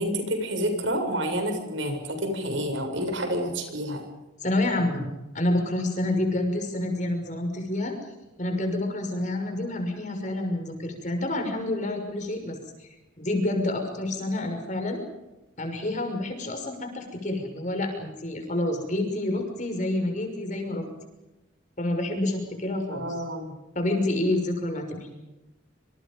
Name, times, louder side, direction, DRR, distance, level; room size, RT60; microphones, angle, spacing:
voice 1, 0.0-4.0 22.9-23.5, equal, 75° right, 5 dB, 7.6 m, -29 dB
voice 2, 4.4-5.1 5.3-7.9 8.4-12.9 13.2-15.0 15.6-20.9 21.8-23.1 23.7-25.1, left 1 dB, 40° left, 4 dB, 6.1 m, -28 dB
27.5 x 27.0 x 5.5 m, 1.0 s
head